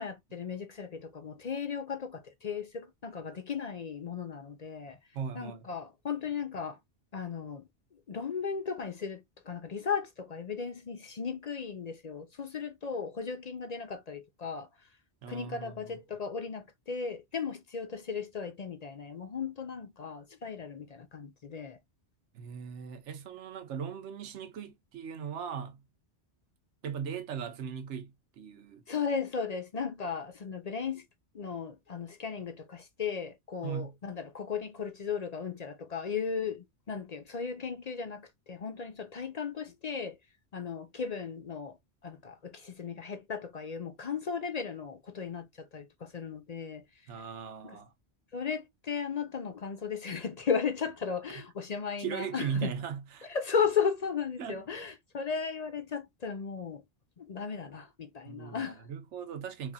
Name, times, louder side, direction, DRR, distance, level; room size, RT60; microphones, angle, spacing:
voice 1, 0.0-5.0 5.4-6.8 7.1-7.6 8.1-14.7 15.3-21.8 28.9-31.0 31.3-40.2 40.5-41.8 42.0-46.8 48.3-52.7 53.3-56.8 57.2-58.9, left 6 dB, 50° left, 0.5 m, -36 dB
voice 2, 5.1-5.7 15.2-16.0 22.3-25.8 26.8-28.8 33.6-33.9 47.1-47.9 52.0-53.3 54.4-54.6 58.3-59.7, right 7 dB, 80° right, 1.0 m, -38 dB
4.6 x 2.5 x 2.6 m
omnidirectional pair, 1.2 m